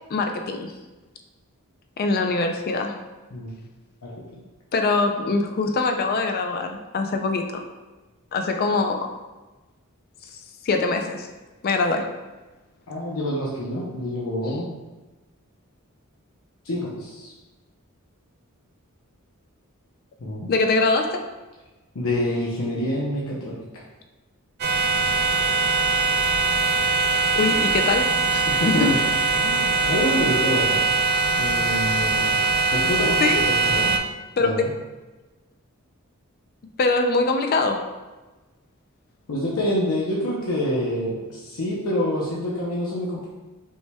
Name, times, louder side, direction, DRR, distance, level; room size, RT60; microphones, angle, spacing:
voice 1, 0.1-0.7 2.0-2.9 4.7-7.6 8.3-9.1 10.6-11.3 11.6-12.1 20.5-21.2 27.4-28.9 31.7-31.8 33.2-33.4 34.4-34.5 36.8-37.8, left 3 dB, 45° left, 5 dB, 0.3 m, -23 dB
voice 2, 12.9-14.7 16.6-17.3 20.2-20.5 21.9-23.6 28.5-29.0 29.4-30.8 31.4-32.4 32.7-33.9 34.4-34.6 39.3-43.3, left 1 dB, 75° left, -5 dB, 0.7 m, -27 dB
sound 1, 24.6-34.0, right 3 dB, 45° right, 0.4 m, -22 dB
5.3 x 3.3 x 2.2 m, 1.2 s
head